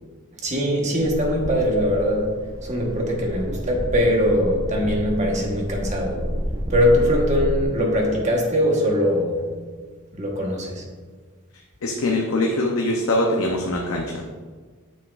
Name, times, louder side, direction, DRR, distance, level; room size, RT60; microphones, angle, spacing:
voice 1, 0.4-2.3 2.6-6.2 6.7-9.4 10.1-10.8, equal, 30° right, -1 dB, 1.1 m, -21 dB
sound 1, 1.0-7.6, equal, 15° right, 0.7 m, -30 dB
voice 2, 11.8-14.3, left 1 dB, 65° left, 0 dB, 0.6 m, -23 dB
8.3 x 5.9 x 2.4 m, 1.5 s
head